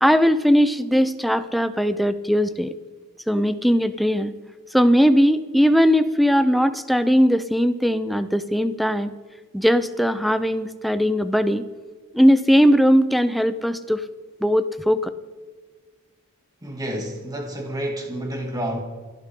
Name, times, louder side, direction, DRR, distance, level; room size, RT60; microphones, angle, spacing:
voice 1, 0.0-2.7 3.3-4.3 4.7-9.1 9.5-11.6 12.1-14.1 14.4-15.1, equal, ahead, 0.6 m, -19 dB
voice 2, 16.6-18.8, right 1 dB, 15° right, 2.5 m, -29 dB
28.5 x 12.0 x 3.8 m
head